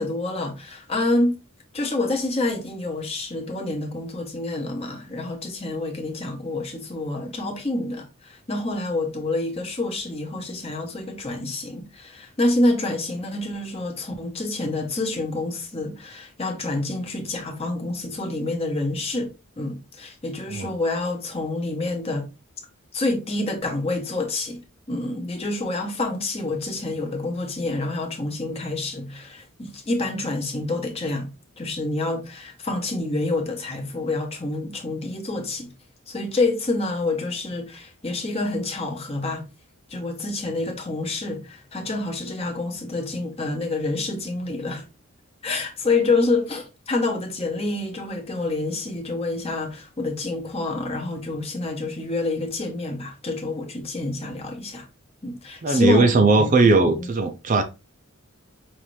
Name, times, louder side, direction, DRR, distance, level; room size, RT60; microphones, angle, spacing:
voice 1, 0.0-1.4 1.7-22.3 22.9-24.6 24.9-31.3 31.6-35.7 36.1-39.4 39.9-44.8 45.4-54.9 55.2-57.1, left 2 dB, 30° left, 0.9 m, -27 dB
voice 2, 55.6-57.6, right 3 dB, 35° right, 0.4 m, -18 dB
5.5 x 2.6 x 3.1 m
head